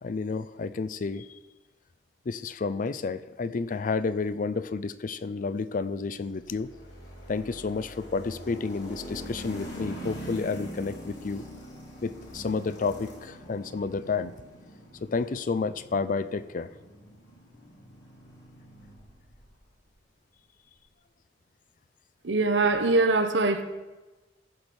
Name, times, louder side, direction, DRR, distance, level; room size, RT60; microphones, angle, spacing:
voice 1, 0.0-1.3 2.3-6.7 7.3-11.5 12.0-14.3 15.0-16.7, left 4 dB, 45° left, 0.4 m, -30 dB
sound 1, 6.4-19.5, equal, 75° left, 3.0 m, -43 dB
voice 2, 22.2-23.6, right 3 dB, 85° right, 1.0 m, -23 dB
14.5 x 5.2 x 6.1 m
head